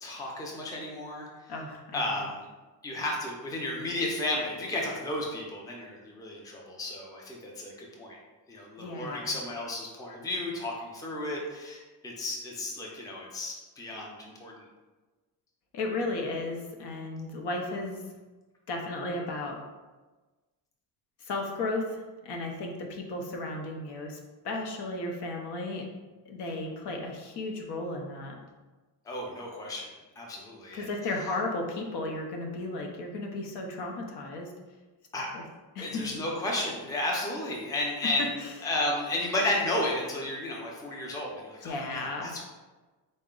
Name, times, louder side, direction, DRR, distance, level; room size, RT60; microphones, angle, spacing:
voice 1, 0.0-1.3 1.9-2.4 2.8-8.2 8.5-14.6 29.1-29.9 30.2-30.9 35.1-35.3 35.8-42.4, left 1 dB, 10° left, -2 dB, 0.4 m, -33 dB
voice 2, 1.5-2.1 8.8-9.3 15.7-18.0 18.7-19.6 21.2-24.2 24.4-25.9 26.3-28.4 30.7-34.5 35.3-35.4 35.7-36.1 38.0-38.1 38.4-38.5 41.6-42.3, left 2 dB, 70° left, 2 dB, 0.8 m, -34 dB
4.0 x 2.1 x 3.6 m, 1.2 s
cardioid pair, 135°, 42 cm